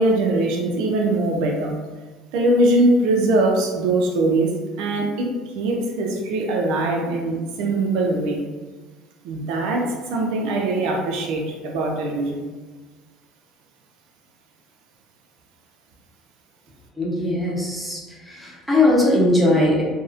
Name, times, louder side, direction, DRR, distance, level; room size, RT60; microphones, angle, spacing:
voice 1, 0.0-1.8 2.3-4.5 4.8-5.3 5.5-8.4 9.2-12.4, right 2 dB, 75° right, 1 dB, 0.4 m, -21 dB
voice 2, 17.0-18.0 18.3-19.8, left 1 dB, ahead, -5 dB, 0.8 m, -19 dB
2.6 x 2.0 x 2.4 m, 1.3 s
supercardioid pair, 110°, 0 cm